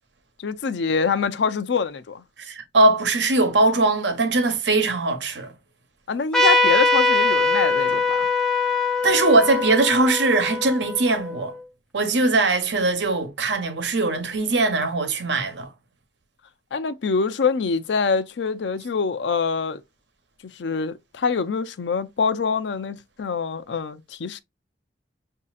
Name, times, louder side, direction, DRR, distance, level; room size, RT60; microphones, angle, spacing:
voice 1, 0.4-2.2 6.1-8.3 16.7-19.8 20.4-24.4, left 5 dB, 80° left, 0.5 m, -25 dB
voice 2, 2.4-5.5 9.0-11.5 11.9-15.7, right 2 dB, 80° right, 1.0 m, -21 dB
Trumpet, 6.3-11.4, left 3 dB, 5° left, 0.8 m, -22 dB
6.3 x 2.7 x 2.4 m
head